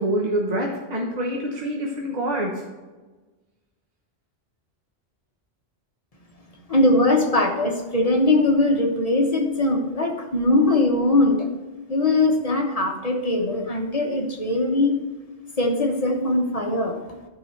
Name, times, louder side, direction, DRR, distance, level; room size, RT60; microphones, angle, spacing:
voice 1, 0.0-2.5, right 1 dB, 40° right, -1 dB, 1.1 m, -26 dB
voice 2, 6.7-11.5 11.9-15.0 15.6-17.2, left 2 dB, 35° left, 2 dB, 1.1 m, -21 dB
11.5 x 4.8 x 4.5 m, 1.2 s
omnidirectional pair, 1.1 m